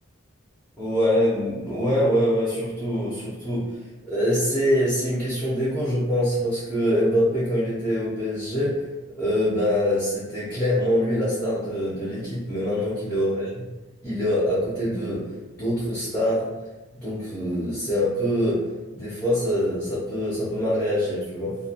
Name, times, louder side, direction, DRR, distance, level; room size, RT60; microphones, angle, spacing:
voice 1, 0.8-3.7 4.1-8.8 9.2-13.4 14.0-16.5 16.9-18.7 18.9-21.6, equal, 5° left, -11 dB, 0.6 m, -24 dB
2.4 x 2.3 x 2.7 m, 1.1 s
head